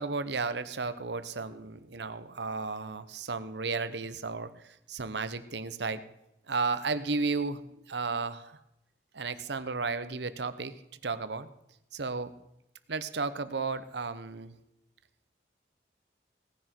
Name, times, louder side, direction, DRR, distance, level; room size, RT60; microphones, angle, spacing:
voice 1, 0.0-6.0 6.5-8.6 9.1-10.7 11.0-11.5 11.9-12.3 12.9-14.5, right 4 dB, 75° right, 13 dB, 0.9 m, -33 dB
18.0 x 10.5 x 4.5 m, 0.85 s
head